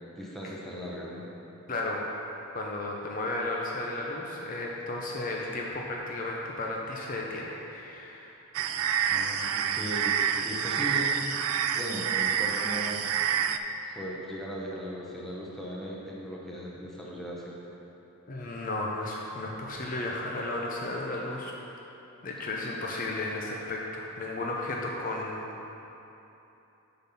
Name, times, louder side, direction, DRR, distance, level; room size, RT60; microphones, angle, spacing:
voice 1, 0.2-1.3 9.0-10.2 10.4-11.2 11.7-13.0 13.8-17.6, equal, ahead, -5 dB, 0.8 m, -38 dB
voice 2, 1.7-2.0 2.5-8.3 18.3-21.5 22.2-25.4, left 2 dB, 40° left, -2 dB, 0.6 m, -34 dB
sound 1, 8.5-13.6, right 8 dB, 85° right, 0.3 m, -28 dB
7.2 x 3.9 x 5.6 m, 3.0 s
head